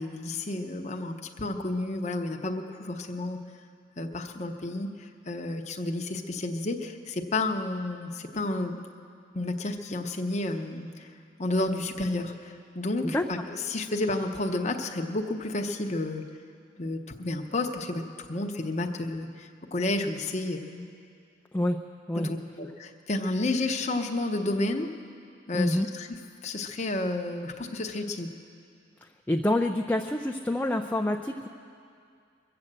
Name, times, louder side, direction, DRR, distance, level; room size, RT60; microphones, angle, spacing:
voice 1, 0.0-3.4 4.0-8.8 9.3-11.1 11.4-16.2 16.8-20.9 22.2-24.9 25.5-26.1 26.4-28.3, left 2 dB, 35° left, 3 dB, 0.8 m, -31 dB
voice 2, 21.5-22.3 25.5-25.9 29.0-31.5, left 1 dB, 10° left, 3 dB, 0.4 m, -27 dB
23.0 x 7.8 x 7.5 m, 2.4 s
head